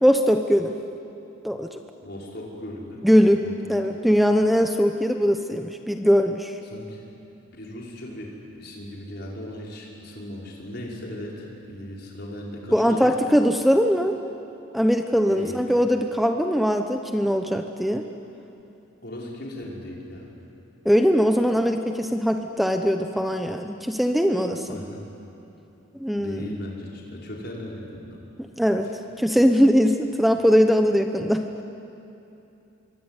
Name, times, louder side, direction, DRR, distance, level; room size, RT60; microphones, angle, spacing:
voice 1, 0.0-0.7 1.4-1.7 3.0-3.4 3.7-6.5 12.7-14.2 14.7-18.0 20.8-24.8 26.0-26.6 28.4-28.9 29.2-31.4, equal, ahead, 5 dB, 0.9 m, -21 dB
voice 2, 2.0-3.0 3.4-3.5 4.0-4.1 6.7-7.0 7.5-13.0 15.3-15.6 19.0-20.3 24.7-25.0 26.2-28.2, left 1 dB, 50° left, -2 dB, 5.4 m, -37 dB
26.0 x 23.5 x 9.8 m, 2.9 s
head